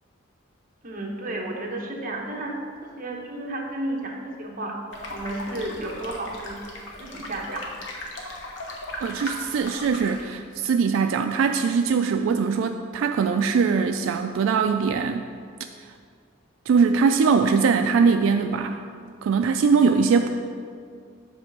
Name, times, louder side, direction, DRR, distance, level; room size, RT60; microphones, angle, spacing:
voice 1, 0.8-2.6 2.8-4.8 5.1-6.6 7.0-7.6, right 1 dB, 45° right, -1 dB, 1.1 m, -32 dB
sound 1, 4.9-10.2, left 1 dB, 70° left, 1.0 m, -37 dB
voice 2, 9.0-15.2 16.7-18.8 19.2-20.3, right 5 dB, 85° right, 6 dB, 0.3 m, -21 dB
8.0 x 3.3 x 6.1 m, 2.2 s
head